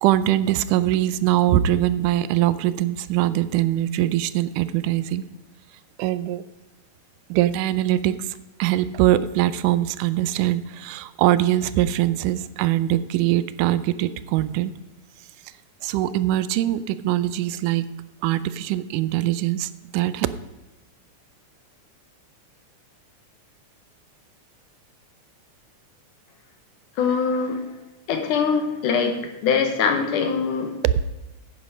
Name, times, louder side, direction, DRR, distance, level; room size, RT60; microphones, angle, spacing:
voice 1, 0.0-5.2 6.0-6.4 7.3-14.7 15.8-17.9 18.2-20.3 30.8-30.9, right 13 dB, 90° right, 15 dB, 2.1 m, -22 dB
voice 2, 27.0-27.6 28.1-30.7, left 6 dB, 80° left, 5 dB, 2.9 m, -23 dB
10.0 x 9.7 x 5.1 m, 1.1 s
omnidirectional pair, 3.6 m